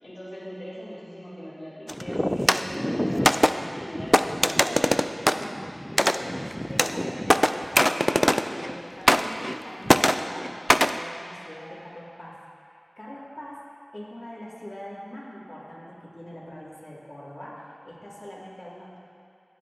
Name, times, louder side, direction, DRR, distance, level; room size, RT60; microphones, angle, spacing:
voice 1, 0.0-4.8, equal, 70° left, -11 dB, 3.1 m, -40 dB
sound 1, 1.9-8.8 9.1-9.6 9.9-11.0, equal, 10° left, 0.4 m, -23 dB
voice 2, 5.3-8.3 8.6-19.0, equal, 45° left, -9 dB, 3.0 m, -42 dB
23.5 x 8.0 x 2.9 m, 2.5 s
wide cardioid pair, 55°, 0 cm